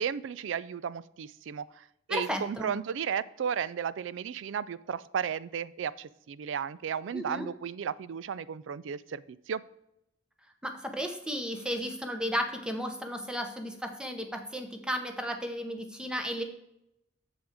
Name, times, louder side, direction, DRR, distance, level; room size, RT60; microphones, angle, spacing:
voice 1, 0.0-9.6, right 7 dB, 85° right, 18 dB, 0.4 m, -34 dB
voice 2, 2.1-2.7 7.1-7.5 10.6-16.4, equal, 5° right, 5 dB, 0.8 m, -34 dB
7.3 x 6.1 x 4.8 m, 0.82 s
head